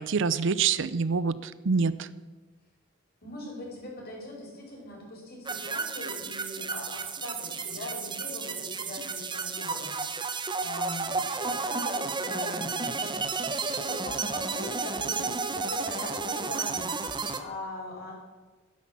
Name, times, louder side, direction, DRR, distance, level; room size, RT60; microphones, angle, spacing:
voice 1, 0.0-2.1, right 5 dB, 65° right, 16 dB, 0.6 m, -26 dB
voice 2, 3.2-10.0 10.6-13.2 13.7-17.0 17.3-18.1, left 1 dB, 50° left, -2 dB, 5.4 m, -41 dB
sound 1, 5.5-17.4, right 4 dB, 25° right, 0.9 m, -32 dB
12.5 x 10.5 x 7.4 m, 1.3 s
head